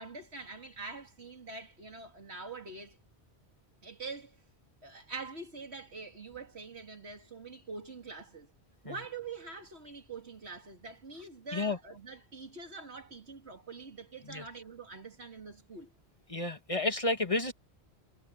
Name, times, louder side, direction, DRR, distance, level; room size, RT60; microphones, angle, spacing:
voice 1, 0.0-3.0 3.8-4.4 4.8-8.5 8.8-15.9, right 4 dB, 80° right, 3.1 m, -45 dB
voice 2, 16.3-17.5, left 2 dB, 30° left, 1.8 m, -31 dB
omnidirectional pair, 1.1 m